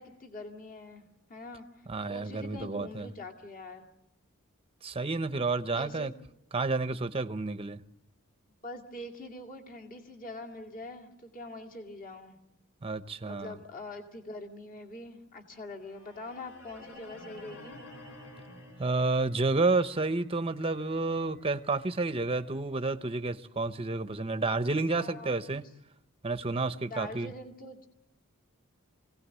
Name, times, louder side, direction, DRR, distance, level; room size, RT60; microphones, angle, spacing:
voice 1, 0.0-3.9 5.7-6.1 8.6-12.4 13.2-17.8 25.0-25.7 26.8-27.9, left 2 dB, 40° left, 2.4 m, -44 dB
voice 2, 1.9-3.1 4.8-6.1 6.5-7.8 12.8-13.5 18.8-25.6 26.2-27.3, right 3 dB, 25° right, 0.8 m, -30 dB
sound 1, 15.8-23.8, left 1 dB, 70° left, 5.8 m, -52 dB
25.0 x 17.5 x 8.3 m
head